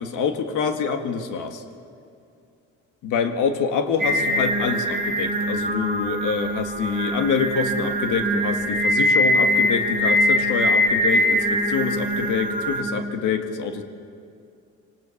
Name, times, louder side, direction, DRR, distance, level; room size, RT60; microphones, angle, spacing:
voice 1, 0.0-1.6 3.0-13.8, left 6 dB, 85° left, 6 dB, 1.8 m, -26 dB
Singing, 4.0-12.8, equal, 30° right, 5.0 m, -22 dB
24.5 x 19.0 x 7.2 m, 2.4 s
cardioid pair, 90°, 30 cm